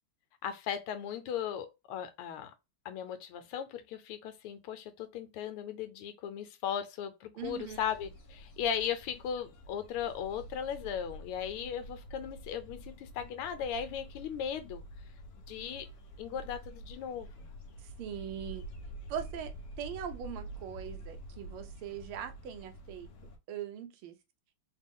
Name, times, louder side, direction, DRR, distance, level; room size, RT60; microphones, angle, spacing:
voice 1, 0.4-2.5 2.8-14.8 15.5-15.9 16.2-17.6, left 8 dB, 80° left, 1.5 m, -37 dB
voice 2, 7.3-7.8 17.8-18.7 19.1-23.1 23.5-24.2, right 9 dB, 80° right, 1.5 m, -41 dB
sound 1, 7.4-23.4, right 1 dB, 60° left, 1.0 m, -48 dB
4.0 x 2.3 x 3.6 m
omnidirectional pair, 2.4 m